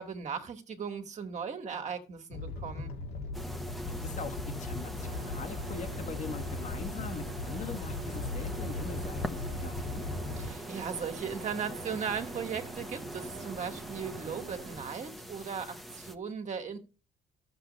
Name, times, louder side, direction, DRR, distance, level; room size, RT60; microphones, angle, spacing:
voice 1, 0.0-2.9 10.4-16.8, right 6 dB, 45° right, 2.2 m, -37 dB
Animal, 2.3-10.5, left 2 dB, 75° left, 2.3 m, -38 dB
sound 1, 3.3-16.1, equal, ahead, 1.3 m, -42 dB
voice 2, 3.9-10.1, left 5 dB, 45° left, 1.7 m, -42 dB
sound 2, 5.0-14.8, right 7 dB, 85° right, 1.2 m, -48 dB
13.0 x 7.8 x 3.2 m
cardioid pair, 110°, 17 cm